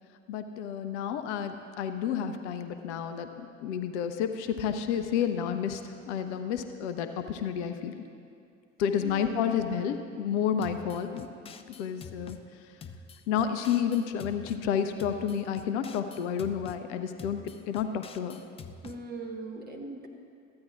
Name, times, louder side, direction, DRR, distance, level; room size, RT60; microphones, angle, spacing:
voice 1, 0.3-8.0 8.8-11.3 11.8-12.4 13.3-17.4 17.7-18.4, left 8 dB, 60° left, 8 dB, 0.6 m, -30 dB
voice 2, 8.9-9.5 18.8-20.1, right 2 dB, 25° right, 1 dB, 1.3 m, -40 dB
sound 1, 10.6-12.4 12.8-14.6 15.0-16.8 17.2-19.0, left 5 dB, 15° left, 0.3 m, -46 dB
14.0 x 9.4 x 2.5 m, 2.4 s
figure-of-eight pair, 55°, 39 cm